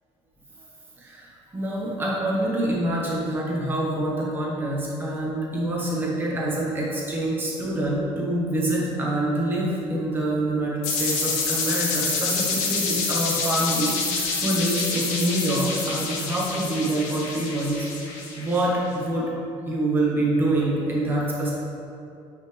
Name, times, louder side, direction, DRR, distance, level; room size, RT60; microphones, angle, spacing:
voice 1, 1.0-19.3 19.7-21.5, right 1 dB, 15° right, -4 dB, 1.5 m, -26 dB
sound 1, 10.8-18.6, left 4 dB, 90° left, 1.5 m, -27 dB
8.9 x 5.7 x 3.5 m, 2.6 s
cardioid pair, 165°, 12 cm